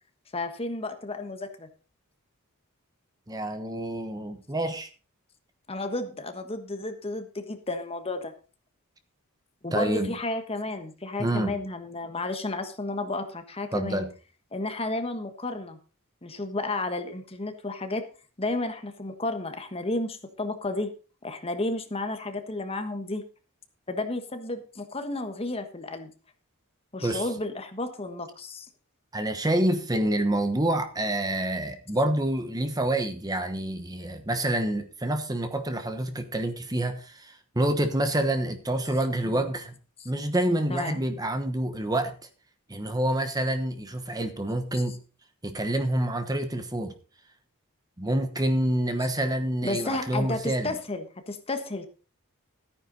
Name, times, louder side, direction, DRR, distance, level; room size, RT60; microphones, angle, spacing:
voice 1, 0.3-1.7 5.7-8.3 9.6-14.0 14.5-15.8 16.2-18.0 18.4-20.9 21.2-23.2 23.9-26.1 26.9-28.7 39.2-39.5 40.7-41.0 44.7-44.8 49.6-51.9, left 2 dB, 25° left, 7 dB, 1.3 m, -32 dB
voice 2, 3.3-4.9 9.7-10.2 11.2-11.6 13.7-14.1 27.0-27.3 29.1-39.7 40.0-42.1 42.7-45.0 45.4-46.9 48.0-50.7, right 1 dB, 15° right, 8 dB, 1.1 m, -27 dB
13.5 x 9.5 x 4.0 m, 0.35 s
head